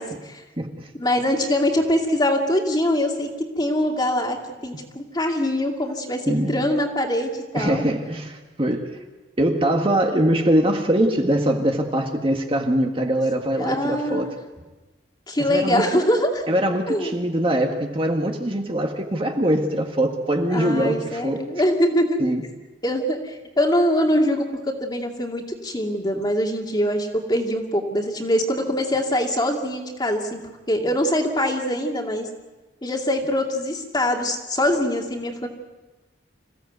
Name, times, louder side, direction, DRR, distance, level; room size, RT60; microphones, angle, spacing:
voice 1, 0.0-0.4 1.0-4.4 4.6-7.8 13.6-14.3 15.3-16.4 16.9-17.2 20.5-22.2 22.8-30.4 30.7-32.3 32.8-35.5, left 1 dB, 20° left, 2 dB, 2.5 m, -23 dB
voice 2, 0.6-0.9 6.3-6.6 7.5-9.0 9.4-14.3 15.4-15.8 16.5-21.4 22.2-22.4, right 1 dB, 30° right, 3 dB, 1.7 m, -22 dB
26.5 x 16.5 x 8.1 m, 1.2 s
head